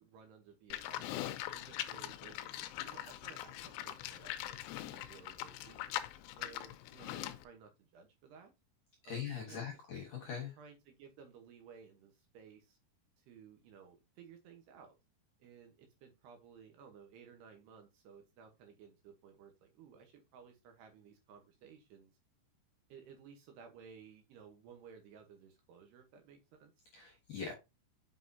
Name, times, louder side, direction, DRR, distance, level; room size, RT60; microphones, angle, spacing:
voice 1, 0.0-4.6 4.9-5.8 6.4-8.5 9.0-9.7 10.6-12.8 13.2-15.0 15.4-22.1 22.9-26.7 27.5-27.6, right 6 dB, 70° right, 4 dB, 2.8 m, -57 dB
Livestock farm animals working animals, 0.7-7.4, left 14 dB, 85° left, 2.5 m, -42 dB
voice 2, 9.0-10.6 26.9-27.5, left 7 dB, 65° left, -1 dB, 2.1 m, -42 dB
7.4 x 5.9 x 2.7 m, 0.24 s
omnidirectional pair, 5.6 m